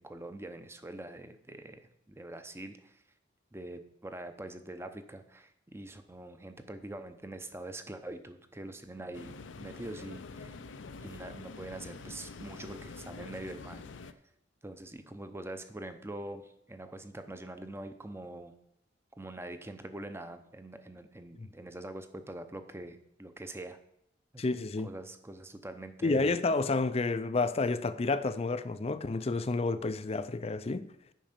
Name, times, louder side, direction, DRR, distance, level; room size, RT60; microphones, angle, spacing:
voice 1, 0.0-3.0 3.5-10.6 11.0-13.8 14.6-18.6 19.2-23.8 24.3-24.4 24.8-26.3, right 1 dB, 15° right, 0.7 m, -44 dB
sound 1, 9.1-14.1, left 4 dB, 80° left, 0.6 m, -46 dB
voice 2, 24.4-24.9 26.0-30.9, left 3 dB, 35° left, 0.5 m, -30 dB
9.1 x 5.3 x 6.7 m
head